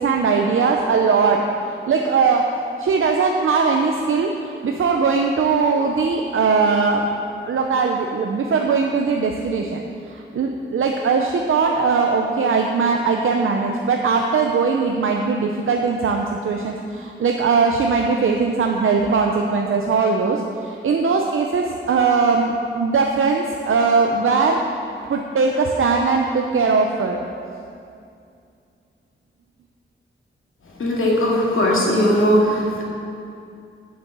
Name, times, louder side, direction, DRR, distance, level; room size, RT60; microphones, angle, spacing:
voice 1, 0.0-1.4 1.9-2.4 2.8-7.1 7.4-9.8 10.1-24.6 25.1-27.2, right 4 dB, 85° right, 2 dB, 0.7 m, -20 dB
voice 2, 30.8-32.8, equal, 90° left, -3 dB, 2.2 m, -18 dB
8.7 x 7.7 x 7.0 m, 2.5 s
wide cardioid pair, 160°, 21 cm